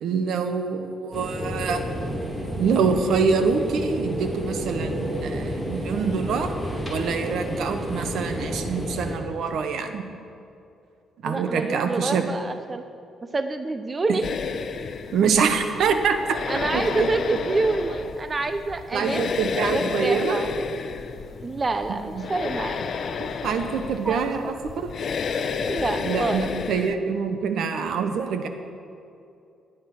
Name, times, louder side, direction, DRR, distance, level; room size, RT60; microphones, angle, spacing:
voice 1, 0.0-1.9 2.6-6.5 6.9-10.0 11.2-12.3 15.1-16.4 16.7-17.4 18.9-20.4 21.9-22.2 23.4-24.9 26.0-28.5, right 5 dB, 70° right, 7 dB, 1.3 m, -25 dB
sound 1, 1.1-9.1, equal, 10° right, 3.4 m, -30 dB
voice 2, 11.2-12.8 13.3-14.2 16.5-20.5 21.4-22.9 24.0-24.2 25.7-26.5, right 3 dB, 25° right, 9 dB, 0.6 m, -27 dB
sound 2, 14.2-26.9, left 6 dB, 55° left, 0.8 m, -31 dB
18.0 x 9.4 x 6.2 m, 2.6 s
cardioid pair, 110°, 0 cm